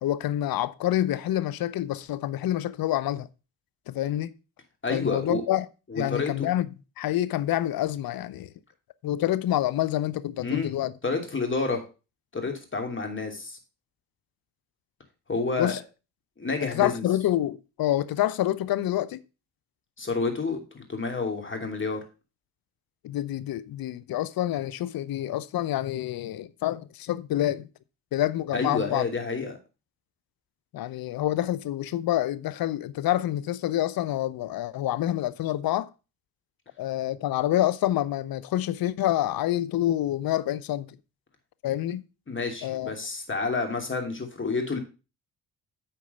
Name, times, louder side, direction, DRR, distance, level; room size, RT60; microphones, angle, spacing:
voice 1, 0.0-3.3 3.9-4.3 4.9-5.7 5.9-6.7 7.0-8.5 9.0-10.9 15.6-15.8 16.6-19.2 23.0-27.7 28.1-29.0 30.7-35.9 36.8-41.0 41.6-42.0 42.6-42.9, left 13 dB, 60° left, 0.7 m, -27 dB
voice 2, 4.8-5.4 5.9-6.5 10.4-10.7 11.0-11.8 12.3-13.6 15.3-15.7 16.4-17.0 20.0-22.0 28.5-29.6 42.3-44.8, left 4 dB, 30° left, 2.8 m, -29 dB
8.7 x 4.6 x 5.5 m
supercardioid pair, 55°, 40 cm